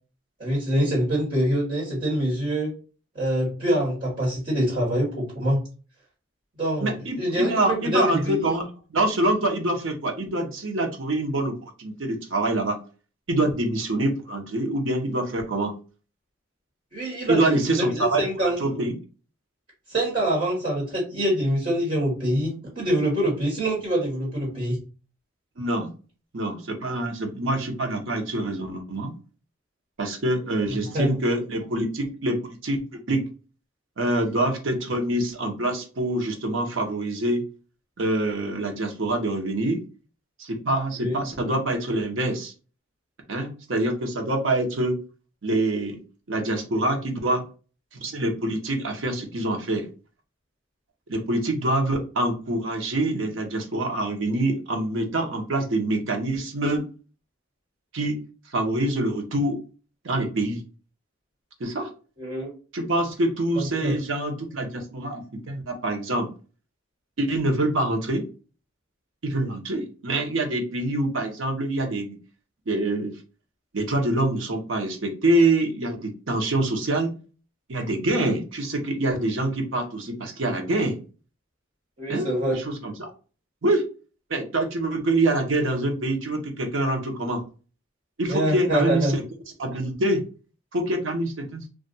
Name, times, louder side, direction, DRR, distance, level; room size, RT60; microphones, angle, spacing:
voice 1, 0.4-2.7 3.1-5.6 6.6-8.6 16.9-18.6 19.9-24.8 30.8-31.1 41.0-41.2 62.2-62.5 63.6-63.9 82.0-82.6 88.3-89.2, equal, 40° right, -5 dB, 1.4 m, -25 dB
voice 2, 6.8-8.6 8.9-12.8 13.3-15.7 17.3-18.9 25.6-25.9 26.3-29.1 30.0-33.2 34.0-37.5 38.0-39.8 40.4-42.5 43.3-45.0 45.4-46.0 46.3-47.4 47.9-49.9 51.1-56.9 57.9-58.2 58.5-59.6 60.0-60.6 61.6-61.9 62.7-66.3 67.2-68.2 69.2-72.2 72.7-73.1 73.7-77.1 77.7-81.0 82.1-82.3 82.5-83.1 83.6-83.8 84.3-87.4 88.2-89.2 89.6-90.2 90.7-91.6, right 1 dB, 75° right, 3 dB, 0.8 m, -25 dB
2.4 x 2.2 x 3.9 m, 0.35 s
head